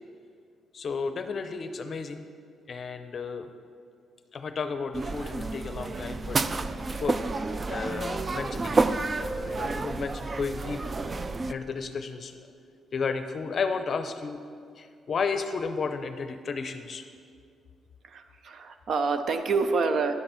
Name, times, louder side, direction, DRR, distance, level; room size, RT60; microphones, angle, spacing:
voice 1, 0.7-2.2 2.7-3.5 4.3-6.4 7.0-7.2 7.7-8.9 9.2-10.8 11.2-12.4 12.9-14.4 14.8-17.1, left 5 dB, 50° left, 8 dB, 0.6 m, -33 dB
sound 1, 4.9-11.5, right 3 dB, 30° right, 0.4 m, -30 dB
voice 2, 18.0-20.1, right 4 dB, 60° right, 8 dB, 0.8 m, -27 dB
11.0 x 9.1 x 4.4 m, 2.4 s
cardioid pair, 105°, 0 cm